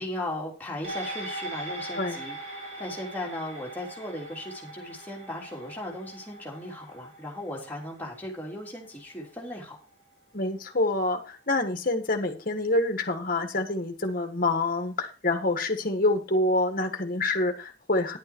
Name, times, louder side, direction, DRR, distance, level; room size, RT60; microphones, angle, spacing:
voice 1, 0.0-9.8, left 1 dB, 10° left, -2 dB, 3.4 m, -37 dB
sound 1, 0.8-9.5 9.9-10.0, right 1 dB, 35° right, 6.8 m, -41 dB
voice 2, 10.3-18.2, left 2 dB, 50° left, 6 dB, 1.7 m, -27 dB
11.0 x 8.8 x 4.5 m, 0.34 s
head